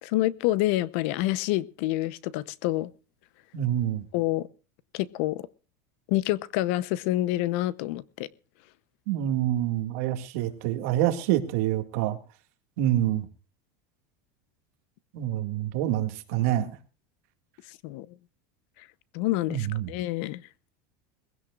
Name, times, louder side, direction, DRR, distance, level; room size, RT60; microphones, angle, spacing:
voice 1, 0.0-2.9 4.1-4.5 4.9-5.5 6.1-8.3 17.7-18.1 18.8-18.9 19.1-20.4, left 16 dB, 55° left, 0.8 m, -27 dB
voice 2, 3.5-4.0 9.1-12.2 12.8-13.3 15.1-16.8 19.5-19.9, right 12 dB, 60° right, 2.0 m, -26 dB
21.5 x 16.0 x 2.4 m
supercardioid pair, 165°, 8 cm